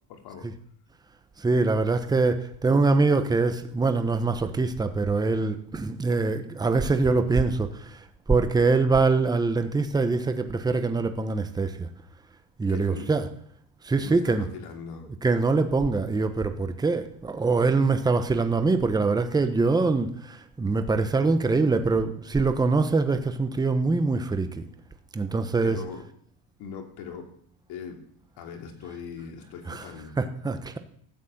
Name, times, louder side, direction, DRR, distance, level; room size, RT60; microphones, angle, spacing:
voice 1, 0.1-0.5 12.6-13.1 14.0-15.1 25.6-26.0 26.6-27.3 27.7-28.0 28.4-30.1, left 6 dB, 55° left, 4 dB, 3.1 m, -40 dB
voice 2, 1.4-8.0 8.3-11.9 12.6-13.2 13.8-14.5 15.2-24.7 25.1-25.8 29.7-29.8 30.2-30.8, right 3 dB, 10° right, 8 dB, 1.0 m, -24 dB
14.0 x 8.3 x 7.9 m, 0.64 s
cardioid pair, 135°, 45 cm